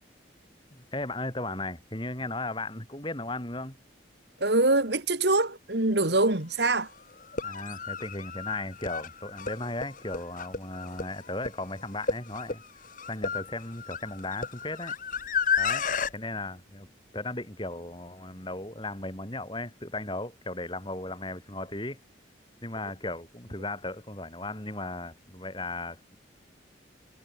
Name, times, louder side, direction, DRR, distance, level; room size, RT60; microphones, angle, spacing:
voice 1, 0.8-3.8 7.4-12.6 13.1-15.0 15.6-15.8 16.1-16.9 17.1-22.0 22.6-26.0, left 2 dB, 25° left, 5.6 m, -36 dB
voice 2, 4.4-6.9, right 2 dB, 60° right, 2.3 m, -24 dB
sound 1, 6.1-6.2 7.2-16.1, left 5 dB, 45° left, 1.8 m, -32 dB
head